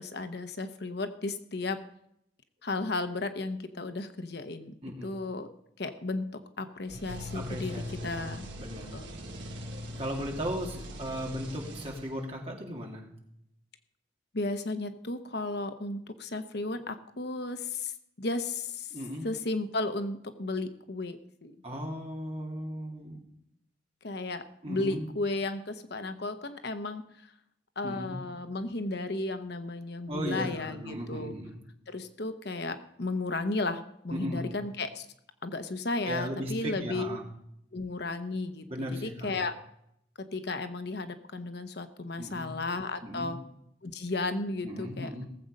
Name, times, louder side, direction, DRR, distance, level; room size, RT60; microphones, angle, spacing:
voice 1, 0.0-1.8 2.6-4.7 5.0-5.5 5.8-8.5 8.9-9.2 14.3-17.9 18.2-18.9 19.2-21.6 24.0-27.3 27.8-31.3 31.9-35.1 35.4-37.2 37.7-39.5 40.3-43.4 43.8-45.1, left 2 dB, 55° left, 9 dB, 0.9 m, -34 dB
voice 2, 4.8-5.1 7.3-9.0 10.0-13.1 18.9-19.3 21.6-23.2 24.6-25.1 27.8-28.2 30.1-31.6 34.1-34.5 36.1-37.2 38.7-39.4 42.2-42.6 43.0-43.4 44.6-45.3, equal, 30° right, 0 dB, 2.6 m, -37 dB
sound 1, 6.9-12.4, equal, 60° right, 2.6 m, -41 dB
18.5 x 7.7 x 5.3 m, 0.75 s
head